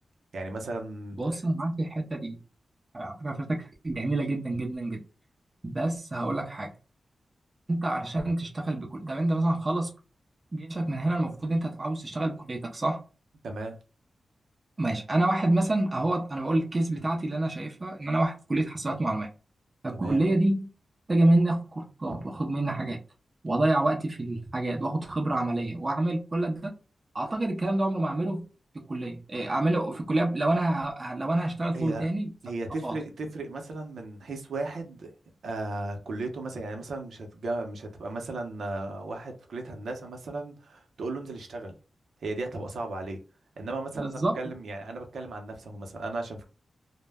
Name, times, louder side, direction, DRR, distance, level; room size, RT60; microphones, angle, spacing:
voice 1, 0.3-1.2 13.4-13.8 19.9-20.2 22.1-22.2 31.7-32.1 32.4-35.1 35.4-41.7 42.2-43.2 43.6-46.5, right 2 dB, 75° right, 0.6 m, -35 dB
voice 2, 1.2-2.4 2.9-5.0 5.6-6.7 7.7-10.0 10.5-13.0 14.8-19.3 19.8-20.7 21.1-23.0 23.4-26.8 27.1-28.5 28.7-32.3 32.8-33.0 44.0-44.4, right 1 dB, 25° right, 0.4 m, -27 dB
2.1 x 2.0 x 3.3 m
wide cardioid pair, 150°, 0 cm